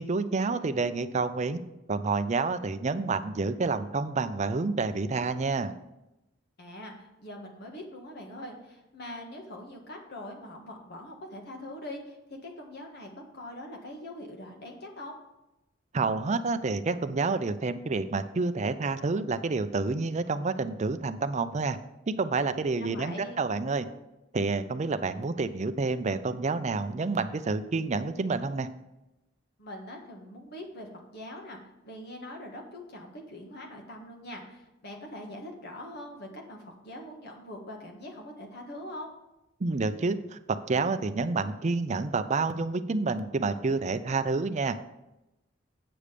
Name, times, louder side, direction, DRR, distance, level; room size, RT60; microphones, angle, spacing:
voice 1, 0.0-1.6 1.9-5.7 15.9-21.8 22.1-23.9 24.3-28.7 39.6-44.9, right 3 dB, 35° right, 11 dB, 0.5 m, -29 dB
voice 2, 6.6-12.2 12.4-15.2 22.8-23.4 29.6-39.1, left 1 dB, 55° left, 1 dB, 1.7 m, -43 dB
8.7 x 6.6 x 5.1 m, 0.94 s
head